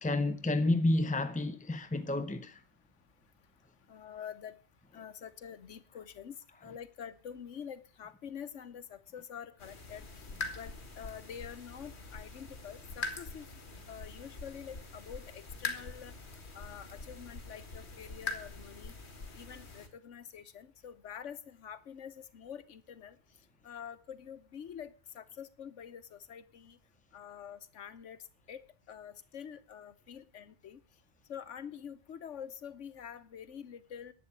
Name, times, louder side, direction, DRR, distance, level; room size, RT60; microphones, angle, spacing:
voice 1, 0.0-2.6, left 2 dB, 10° left, 0.4 m, -30 dB
voice 2, 3.9-4.6 4.9-13.5 13.9-16.1 16.5-18.9 19.3-23.2 23.6-26.8 27.1-28.2 28.5-30.8 31.3-34.1, left 8 dB, 85° left, 1.3 m, -47 dB
sound 1, 9.6-19.9, left 4 dB, 65° left, 2.0 m, -43 dB
11.0 x 9.0 x 8.4 m
omnidirectional pair, 1.2 m